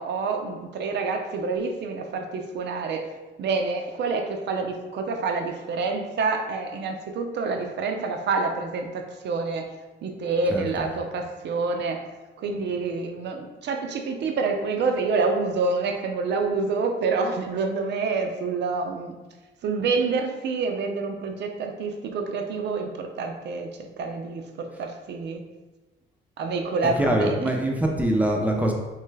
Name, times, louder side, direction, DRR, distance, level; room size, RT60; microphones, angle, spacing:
voice 1, 0.0-3.1 3.4-9.7 10.0-12.0 12.4-19.1 19.6-25.4 26.4-27.5, right 4 dB, 60° right, 4 dB, 0.5 m, -27 dB
voice 2, 27.0-28.7, right 1 dB, 5° right, 0 dB, 0.4 m, -23 dB
3.1 x 2.3 x 3.2 m, 1.2 s
cardioid pair, 90°, 20 cm